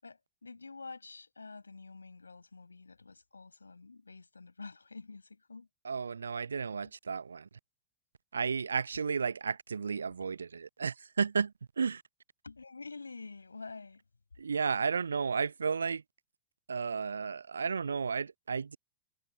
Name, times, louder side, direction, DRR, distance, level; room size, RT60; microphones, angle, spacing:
voice 1, 0.0-5.7 6.8-6.9 8.9-9.0 10.1-10.2 12.4-14.0, left 4 dB, 80° left, 5.4 m, -48 dB
voice 2, 5.8-7.6 8.3-12.0 14.4-16.0 16.7-18.8, right 5 dB, 75° right, 0.7 m, -33 dB
figure-of-eight pair, 90°, 0 cm